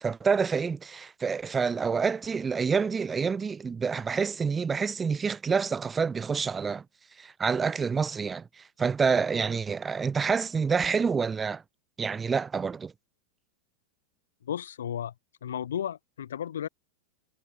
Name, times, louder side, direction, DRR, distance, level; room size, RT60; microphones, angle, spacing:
voice 1, 0.0-6.8 7.2-11.6 12.0-12.9, right 5 dB, 15° right, 1.0 m, -27 dB
voice 2, 14.4-15.1 15.4-16.7, left 9 dB, 65° left, 4.0 m, -33 dB
figure-of-eight pair, 90°, 0 cm